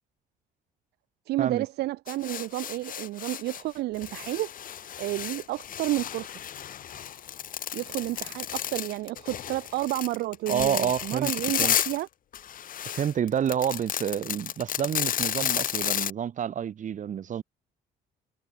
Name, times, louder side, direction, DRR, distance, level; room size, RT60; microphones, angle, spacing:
voice 1, 1.3-4.5 5.0-6.3 7.7-12.1, right 17 dB, 80° right, 1.3 m, -31 dB
sound 1, 2.1-3.6 3.9-12.0 12.3-16.1, left 10 dB, 55° left, 6.3 m, -32 dB
voice 2, 10.5-11.3 11.6-11.8 12.9-17.4, right 9 dB, 50° right, 4.3 m, -28 dB
cardioid pair, 110°, 17 cm